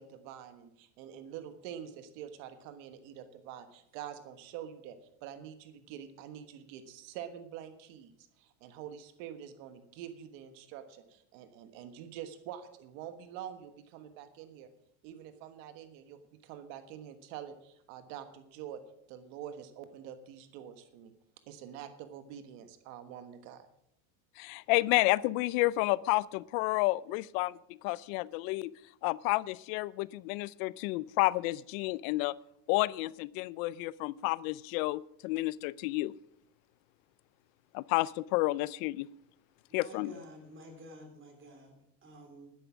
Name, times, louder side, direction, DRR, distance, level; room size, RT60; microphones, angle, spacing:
voice 1, 0.0-14.7 15.0-18.8 19.1-21.1 21.5-23.7, right 9 dB, 75° right, 9 dB, 1.4 m, -46 dB
voice 2, 24.4-27.6 27.8-28.7 29.0-32.4 32.7-36.2 37.7-39.1 39.7-40.1, left 20 dB, 75° left, 21 dB, 0.5 m, -30 dB
voice 3, 39.7-42.5, equal, 30° right, 3 dB, 3.6 m, -51 dB
12.0 x 10.5 x 6.1 m, 0.76 s
cardioid pair, 150°, 41 cm